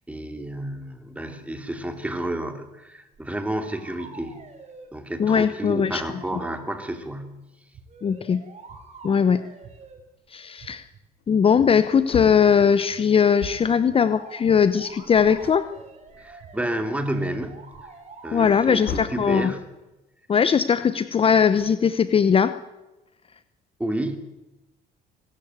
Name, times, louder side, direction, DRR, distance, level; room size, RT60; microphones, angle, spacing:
voice 1, 0.1-4.5 4.9-7.4 16.2-17.6 18.2-19.7 23.8-24.2, right 1 dB, 10° right, 7 dB, 2.8 m, -30 dB
sound 1, 3.1-3.3 3.7-4.9 5.6-6.6 7.9-10.0 13.9-19.0, right 4 dB, 40° right, 5.5 m, -46 dB
voice 2, 5.2-6.0 8.0-8.4 9.0-9.4 10.3-10.8 11.3-15.7 18.3-19.5 20.3-22.6, left 7 dB, 35° left, 13 dB, 0.8 m, -20 dB
sound 2, 7.0-7.2 7.7-8.2 8.7-9.1 9.6-10.0 10.6-11.0 11.6-12.0 12.6-13.0 13.5-14.0 14.4-14.8 15.4-15.8 16.4-16.8 17.4-17.8 18.3-18.8 19.3-19.7, right 9 dB, 60° right, 5.1 m, -48 dB
Wood, 11.2-11.3 11.6-13.9 15.0-15.1 15.4-16.6 17.1-17.2 18.4-19.3 21.4-22.3, left 9 dB, 75° left, 1.8 m, -38 dB
23.0 x 13.5 x 9.5 m, 1.0 s
cardioid pair, 110°, 17 cm